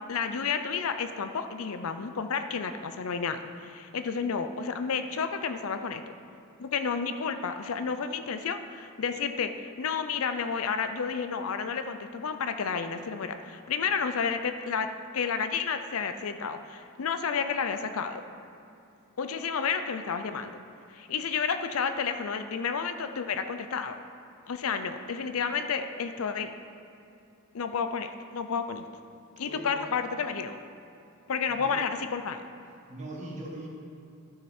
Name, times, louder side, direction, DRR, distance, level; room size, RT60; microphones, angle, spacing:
voice 1, 0.1-6.0 6.6-14.9 15.1-18.2 19.2-20.5 20.9-24.0 24.5-26.5 27.5-28.8 29.4-30.6 31.3-32.4, left 6 dB, 65° left, 9 dB, 0.5 m, -31 dB
voice 2, 29.5-30.1 31.5-31.8 32.6-33.7, right 1 dB, 35° right, -3 dB, 1.7 m, -41 dB
12.0 x 5.9 x 4.3 m, 2.7 s
head